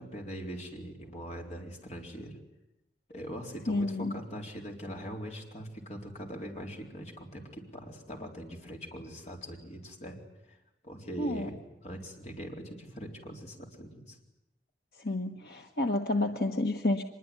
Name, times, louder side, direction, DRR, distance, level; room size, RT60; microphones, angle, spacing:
voice 1, 0.0-2.4 3.1-10.2 10.5-10.6 10.8-14.2, equal, 40° left, 1 dB, 4.1 m, -42 dB
voice 2, 3.7-4.2 11.2-11.5 15.0-17.0, left 2 dB, 60° left, 4 dB, 1.3 m, -30 dB
24.5 x 21.5 x 9.6 m, 0.91 s
head